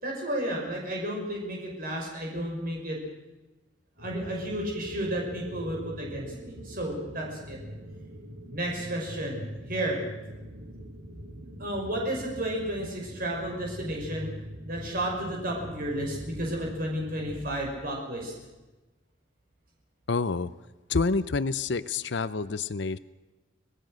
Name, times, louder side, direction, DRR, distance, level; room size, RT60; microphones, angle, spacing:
voice 1, 0.0-3.0 4.0-7.6 8.5-10.0 11.6-14.3 14.6-18.3, right 1 dB, 50° right, -1 dB, 5.6 m, -32 dB
sound 1, 4.0-17.4, equal, 85° right, 3.6 m, -43 dB
voice 2, 20.1-20.5 20.9-23.0, left 4 dB, 60° left, 15 dB, 0.6 m, -28 dB
25.5 x 18.5 x 6.4 m, 1.1 s
head